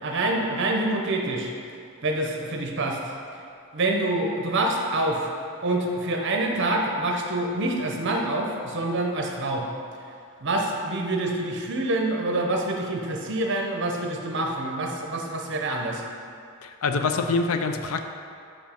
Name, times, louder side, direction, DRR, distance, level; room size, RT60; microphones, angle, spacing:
voice 1, 0.0-1.5 2.0-3.1 3.7-5.3 5.6-9.7 10.4-16.0, right 2 dB, 55° right, 1 dB, 0.8 m, -26 dB
voice 2, 16.6-18.0, left 4 dB, 75° left, 6 dB, 0.5 m, -25 dB
5.6 x 5.2 x 5.2 m, 2.5 s
head